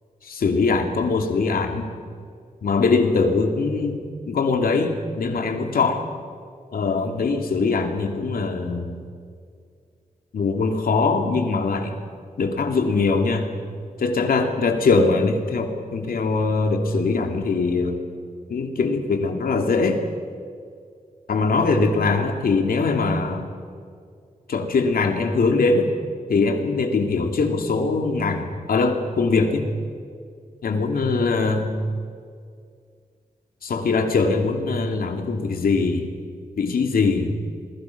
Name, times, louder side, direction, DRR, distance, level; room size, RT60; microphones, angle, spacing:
voice 1, 0.2-1.9 2.6-6.0 6.7-9.0 10.3-12.0 12.4-13.5 14.0-18.0 18.5-20.0 21.3-23.5 24.5-25.9 26.3-29.7 30.6-31.7 33.6-36.1 36.6-37.4, left 4 dB, 90° left, 4 dB, 2.7 m, -22 dB
29.0 x 21.5 x 6.0 m, 2.2 s
wide cardioid pair, 110°, 15 cm